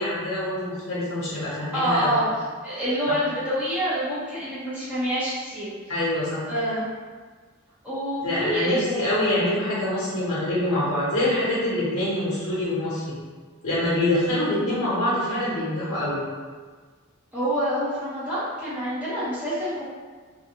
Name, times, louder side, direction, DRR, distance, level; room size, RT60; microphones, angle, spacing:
voice 1, 0.0-2.1 5.9-6.4 8.2-13.2 13.6-16.2, left 1 dB, 80° left, -8 dB, 0.9 m, -25 dB
voice 2, 1.7-2.2 2.6-5.7 6.5-6.8 7.8-9.0 17.3-19.8, equal, 5° right, -12 dB, 0.8 m, -26 dB
2.3 x 2.3 x 2.9 m, 1.5 s
head